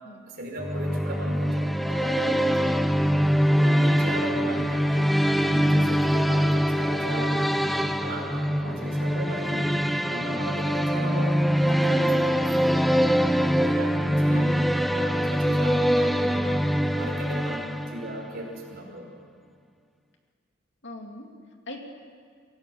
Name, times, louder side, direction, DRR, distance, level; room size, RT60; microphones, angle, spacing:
voice 1, 0.3-2.7 3.6-5.0 5.4-7.7 8.0-9.7 10.1-12.9 13.6-14.6 14.9-16.6 16.9-19.1, equal, 50° right, -1 dB, 5.4 m, -37 dB
sound 1, 0.6-18.3, equal, ahead, 0.5 m, -23 dB
sound 2, 3.1-12.1, equal, 25° left, 1.7 m, -39 dB
voice 2, 11.1-11.4 14.3-14.6 20.8-21.3 21.7-21.8, left 1 dB, 60° left, 2 dB, 2.6 m, -40 dB
24.5 x 16.5 x 7.9 m, 2.1 s
head